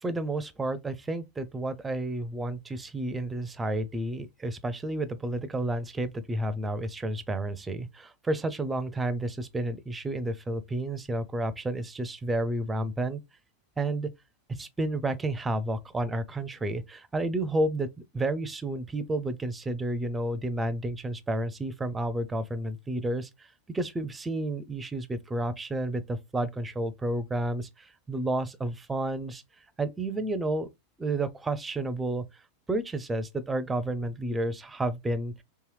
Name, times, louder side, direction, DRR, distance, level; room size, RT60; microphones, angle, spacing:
voice 1, 0.0-13.2 13.8-14.1 14.5-17.9 18.1-23.5 23.7-29.4 29.8-30.7 31.0-32.2 32.7-35.4, right 2 dB, 15° right, 0.5 m, -31 dB
3.3 x 3.0 x 3.2 m
hypercardioid pair, 120°, 0 cm